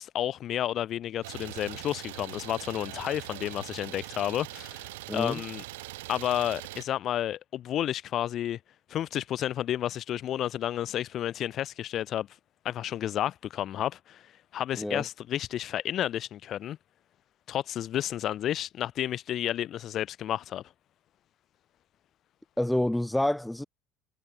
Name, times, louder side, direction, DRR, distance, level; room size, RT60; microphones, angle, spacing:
voice 1, 0.0-5.6 6.1-8.6 8.9-12.3 12.6-16.8 17.5-20.6, left 11 dB, 45° left, 0.4 m, -31 dB
Idling, 1.2-6.8, right 19 dB, 65° right, 3.9 m, -42 dB
voice 2, 5.1-5.4 14.8-15.0 22.6-23.6, left 1 dB, 5° left, 1.4 m, -28 dB
figure-of-eight pair, 60°, 0 cm